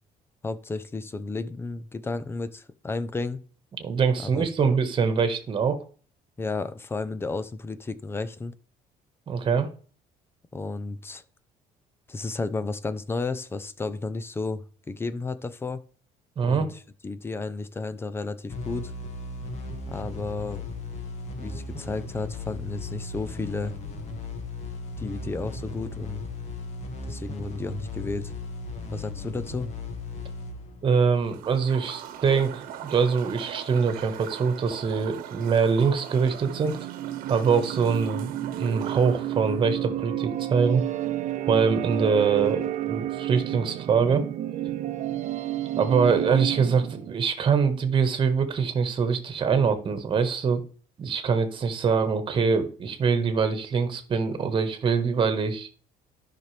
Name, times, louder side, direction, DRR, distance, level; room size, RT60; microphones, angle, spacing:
voice 1, 0.4-3.4 4.2-4.7 6.4-8.5 10.5-11.2 12.1-15.8 16.4-18.9 19.9-20.6 21.4-23.8 25.0-26.2 27.1-28.3 28.9-29.7, left 3 dB, 15° left, 14 dB, 0.7 m, -33 dB
voice 2, 3.8-5.8 9.3-9.7 16.4-16.7 30.8-36.8 37.3-40.8 41.5-44.2 45.8-50.6 51.0-55.7, right 5 dB, 35° right, 8 dB, 1.5 m, -24 dB
sound 1, 18.5-31.8, left 3 dB, 45° left, 2.0 m, -37 dB
sound 2, 31.1-39.7, right 10 dB, 75° right, 1.2 m, -41 dB
sound 3, 35.8-47.2, right 13 dB, 50° right, 0.9 m, -31 dB
12.5 x 6.0 x 3.4 m, 0.40 s
cardioid pair, 140°, 15 cm